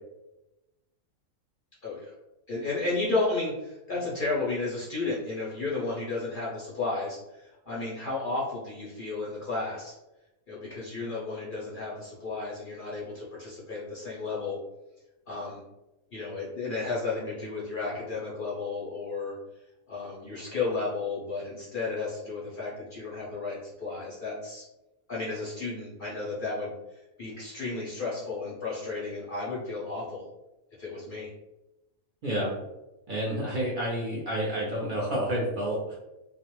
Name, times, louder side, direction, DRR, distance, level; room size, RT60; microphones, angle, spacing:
voice 1, 1.8-2.1 2.5-9.9 10.5-14.6 15.3-15.6 16.1-19.4 19.9-24.7 25.1-30.3 30.8-31.3, left 3 dB, 55° left, -6 dB, 0.6 m, -33 dB
voice 2, 32.2-32.5 33.1-36.0, equal, 65° right, -5 dB, 0.5 m, -29 dB
2.4 x 2.1 x 2.9 m, 0.98 s
omnidirectional pair, 1.5 m